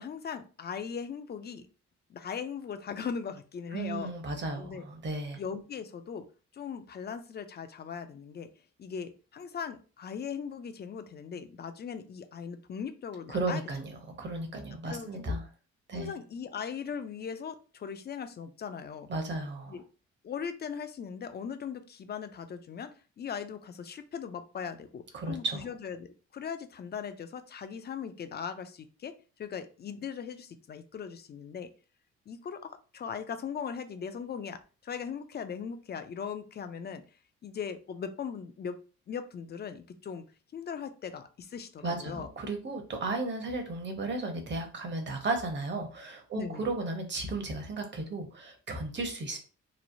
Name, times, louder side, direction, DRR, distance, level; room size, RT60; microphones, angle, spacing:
voice 1, 0.0-1.7 2.1-4.1 4.6-4.8 5.4-6.3 6.5-8.5 8.8-13.6 14.8-15.4 15.9-19.1 19.7-19.8 20.2-29.1 29.4-31.7 32.3-37.0 37.4-38.8 39.1-40.2 40.5-42.3 46.3-46.7, left 7 dB, 35° left, 10 dB, 0.4 m, -39 dB
voice 2, 3.7-5.4 13.3-15.4 15.9-16.2 19.1-19.8 25.1-25.6 41.8-49.4, right 2 dB, 40° right, 4 dB, 0.8 m, -34 dB
3.0 x 2.0 x 2.5 m, 0.36 s
cardioid pair, 90°, 30 cm